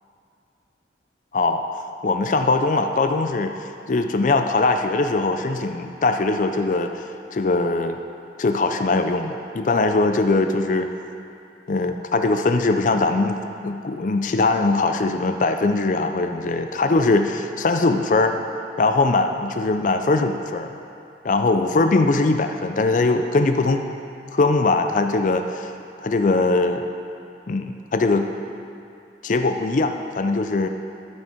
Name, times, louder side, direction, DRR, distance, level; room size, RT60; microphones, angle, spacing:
voice 1, 2.0-3.5 3.9-7.0 7.3-8.0 8.4-10.9 11.7-18.4 18.8-20.7 21.2-23.8 24.3-25.7 26.0-26.9 27.5-28.3 29.2-30.7, left 3 dB, 45° left, 7 dB, 0.4 m, -21 dB
12.5 x 6.2 x 4.4 m, 2.6 s
head